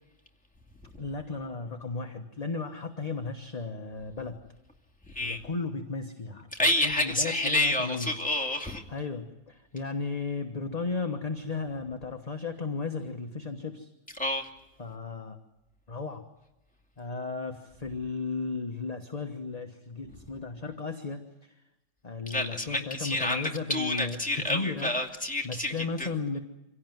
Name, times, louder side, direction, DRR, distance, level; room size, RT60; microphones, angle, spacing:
voice 1, 1.0-4.4 5.2-6.5 6.8-8.2 8.9-13.9 14.8-15.4 15.9-16.2 17.0-21.5 22.0-25.1 25.4-26.4, left 4 dB, 25° left, 4 dB, 1.1 m, -35 dB
voice 2, 5.1-5.4 6.6-8.8 14.2-14.5 22.3-26.1, left 1 dB, 5° left, 1 dB, 2.3 m, -29 dB
26.0 x 17.5 x 9.3 m, 0.95 s
omnidirectional pair, 2.1 m